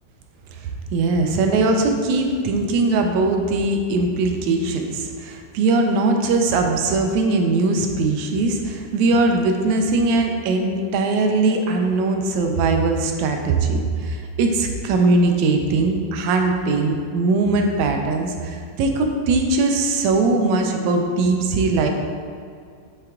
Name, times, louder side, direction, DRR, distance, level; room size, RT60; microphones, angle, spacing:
voice 1, 0.5-21.9, right 3 dB, 80° right, 3 dB, 1.7 m, -20 dB
7.8 x 3.4 x 3.6 m, 2.2 s
omnidirectional pair, 3.4 m